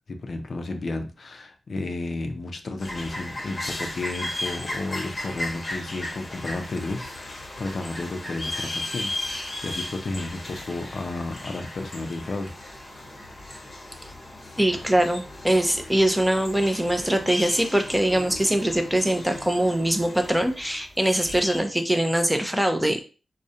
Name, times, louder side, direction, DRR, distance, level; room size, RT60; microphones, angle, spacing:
voice 1, 0.1-12.5 16.7-17.0, left 2 dB, 60° left, 5 dB, 0.4 m, -32 dB
sound 1, 2.8-21.6, left 1 dB, 35° left, 0.8 m, -36 dB
voice 2, 14.6-23.0, right 1 dB, 10° right, 5 dB, 0.4 m, -22 dB
2.4 x 2.0 x 2.6 m, 0.34 s
cardioid pair, 65°, 0 cm